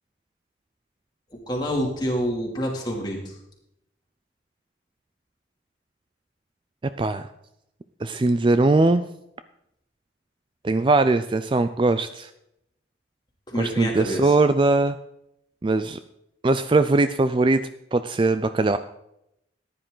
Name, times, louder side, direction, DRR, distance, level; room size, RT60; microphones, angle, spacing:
voice 1, 1.3-3.3 13.5-14.3, equal, 25° left, -1 dB, 2.7 m, -27 dB
voice 2, 7.0-7.3 8.0-9.0 10.6-12.3 13.6-15.0 15.6-16.0 16.4-17.6 17.9-18.8, right 2 dB, 25° right, 11 dB, 0.3 m, -20 dB
14.5 x 10.0 x 3.9 m, 0.81 s
head